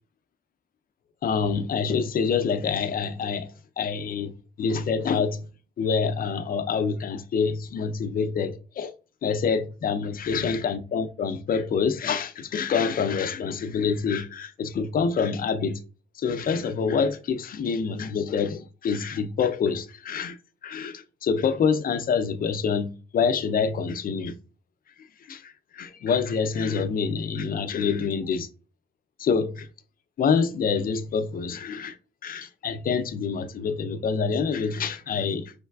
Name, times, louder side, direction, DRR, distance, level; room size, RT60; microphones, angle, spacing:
voice 1, 1.2-4.3 4.6-5.5 5.8-8.9 9.2-15.8 16.1-20.4 20.6-24.4 25.0-28.5 29.2-29.7 30.2-32.0 32.2-35.5, left 6 dB, 45° left, 0.5 m, -26 dB
5.5 x 3.3 x 2.3 m
cardioid pair, 90°, 20 cm